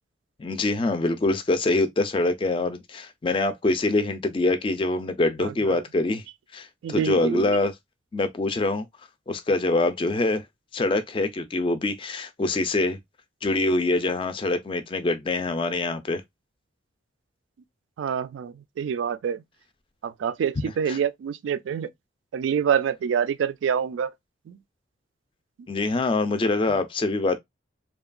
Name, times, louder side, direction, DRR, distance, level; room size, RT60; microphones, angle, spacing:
voice 1, 0.4-6.2 6.5-7.7 8.1-8.9 9.3-10.4 10.7-13.0 13.4-16.2 20.6-21.0 25.7-27.4, left 2 dB, 30° left, 0.3 m, -24 dB
voice 2, 5.4-5.8 6.8-7.6 18.0-19.4 20.0-21.9 22.3-24.1 24.5-24.6, right 7 dB, 90° right, 0.3 m, -26 dB
2.8 x 2.3 x 2.4 m
head